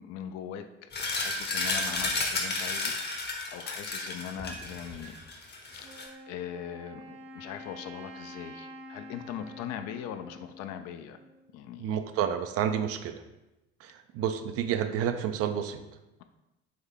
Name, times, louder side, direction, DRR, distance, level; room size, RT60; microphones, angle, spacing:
voice 1, 0.0-5.1 5.7-5.9 6.3-11.2 11.5-12.0, left 9 dB, 55° left, 9 dB, 0.4 m, -41 dB
sound 1, 0.9-6.1, left 3 dB, 30° left, 0.8 m, -32 dB
Wind instrument woodwind instrument, 5.8-11.6, equal, 75° right, 0.9 m, -47 dB
voice 2, 11.8-13.2 13.8-15.8, right 9 dB, 50° right, 8 dB, 0.4 m, -30 dB
3.6 x 3.5 x 3.4 m, 0.98 s
figure-of-eight pair, 50°, 32 cm